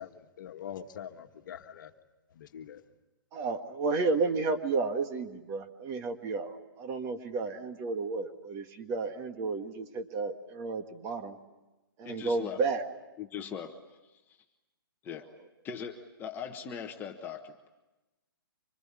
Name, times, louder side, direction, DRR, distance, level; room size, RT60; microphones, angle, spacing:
voice 1, 0.0-1.9 2.3-2.8, left 9 dB, 55° left, 6 dB, 1.6 m, -44 dB
voice 2, 3.3-11.4 12.0-12.8, right 4 dB, 25° right, 7 dB, 1.7 m, -32 dB
voice 3, 12.0-12.6 13.2-13.7 14.3-14.4 15.0-15.2 15.6-17.7, left 7 dB, 15° left, 4 dB, 1.3 m, -40 dB
26.0 x 21.0 x 9.7 m, 1.1 s
hypercardioid pair, 150°, 13 cm